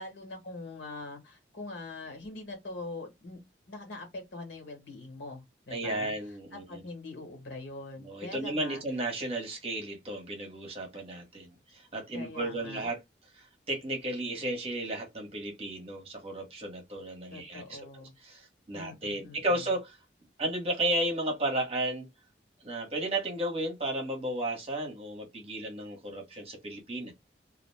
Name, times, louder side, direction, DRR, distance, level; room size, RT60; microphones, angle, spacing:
voice 1, 0.0-3.4 3.7-6.1 6.5-8.8 12.1-12.9 17.3-18.1 18.7-19.7, left 2 dB, 85° left, 1.3 m, -43 dB
voice 2, 5.7-6.8 8.0-13.0 13.3-17.8 18.2-20.0 20.4-22.1 22.6-27.1, right 1 dB, 35° right, 0.9 m, -33 dB
2.4 x 2.1 x 3.2 m
head